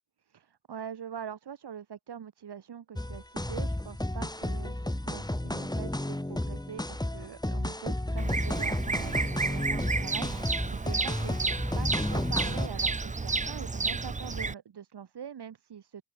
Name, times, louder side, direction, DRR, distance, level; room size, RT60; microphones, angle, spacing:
voice 1, 0.3-16.0, right 8 dB, 85° right, 2.2 m, -44 dB
sound 1, 3.0-12.7, left 1 dB, 10° left, 3.4 m, -32 dB
Bird vocalization bird call bird song, 8.2-14.5, right 4 dB, 20° right, 0.6 m, -31 dB
wide cardioid pair, 75°, 39 cm